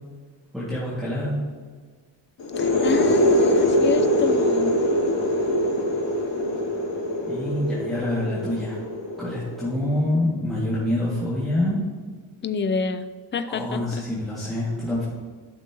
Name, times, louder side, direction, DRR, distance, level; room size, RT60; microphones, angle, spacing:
voice 1, 0.5-1.4 7.2-8.8 9.2-11.8 13.5-15.1, left 1 dB, ahead, -10 dB, 2.1 m, -26 dB
sound 1, 2.4-9.9, left 1 dB, 65° left, 2.4 m, -23 dB
voice 2, 2.6-4.8 12.4-13.0 13.3-13.8, left 5 dB, 25° left, 10 dB, 0.4 m, -28 dB
13.0 x 5.9 x 3.0 m, 1.5 s
wide cardioid pair, 125°, 47 cm